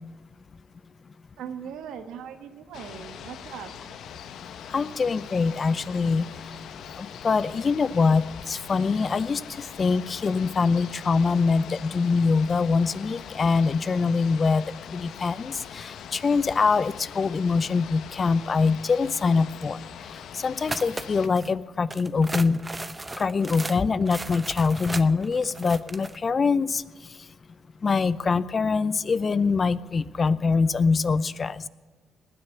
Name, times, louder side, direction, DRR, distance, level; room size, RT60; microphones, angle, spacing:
voice 1, 1.4-4.0, right 8 dB, 85° right, 8 dB, 1.6 m, -39 dB
sound 1, 2.7-21.3, left 8 dB, 75° left, 0.8 m, -42 dB
voice 2, 4.7-6.5 6.9-14.7 14.9-19.8 20.0-22.6 23.2-27.2 27.8-31.7, left 4 dB, 40° left, 17 dB, 0.5 m, -24 dB
sound 2, 20.6-21.5 21.9-26.2, right 2 dB, 15° right, 0.7 m, -36 dB
19.5 x 6.5 x 9.4 m, 1.4 s
cardioid pair, 90°, 0 cm